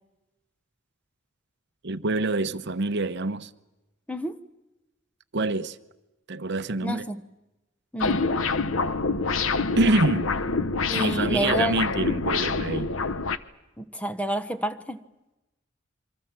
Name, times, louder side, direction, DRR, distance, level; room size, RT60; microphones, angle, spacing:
voice 1, 1.8-3.5 5.3-5.8 6.3-7.1 9.8-10.3 10.9-12.9, right 2 dB, 60° right, 0.9 m, -26 dB
voice 2, 4.1-4.4 6.8-7.2 7.9-8.2 10.9-11.8 13.8-15.0, equal, 5° left, 1.0 m, -29 dB
sound 1, 8.0-13.4, left 4 dB, 85° left, 1.0 m, -26 dB
27.5 x 24.5 x 7.5 m
head